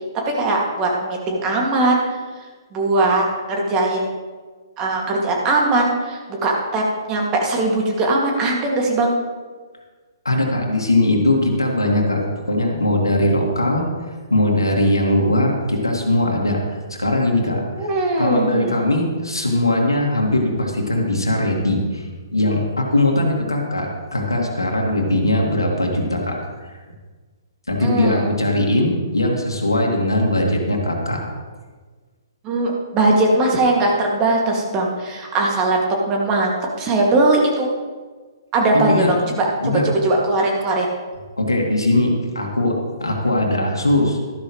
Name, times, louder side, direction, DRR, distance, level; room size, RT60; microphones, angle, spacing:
voice 1, 0.3-2.0 2.7-4.1 4.8-9.1 17.7-18.8 27.8-28.3 32.4-35.8 36.1-37.7 38.5-40.9, right 2 dB, 25° right, -1 dB, 2.2 m, -20 dB
voice 2, 10.2-12.2 12.5-13.8 14.3-16.6 16.9-17.9 18.2-26.4 27.7-31.2 38.7-39.1 39.6-39.9 41.4-44.2, left 1 dB, 90° left, 0 dB, 2.1 m, -20 dB
12.5 x 12.0 x 3.1 m, 1.4 s
figure-of-eight pair, 125°, 2 cm